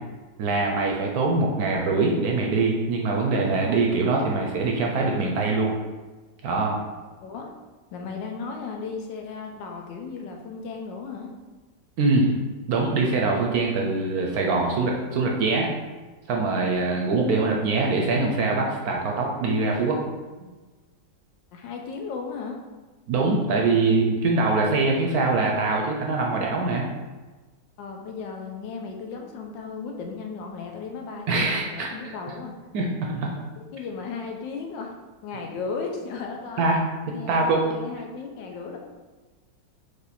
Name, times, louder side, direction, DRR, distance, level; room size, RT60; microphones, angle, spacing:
voice 1, 0.4-5.7 6.4-6.8 12.0-15.7 16.3-20.0 23.1-26.9 31.3-31.9 32.7-33.3 36.6-36.8 37.3-37.6, right 3 dB, 70° right, 0 dB, 1.0 m, -23 dB
voice 2, 7.2-7.5 7.9-11.3 21.5-22.6 27.8-32.5 33.7-34.9 35.2-36.6 37.1-38.8, left 5 dB, 80° left, 2 dB, 1.4 m, -35 dB
4.7 x 2.7 x 4.1 m, 1.3 s
omnidirectional pair, 2.0 m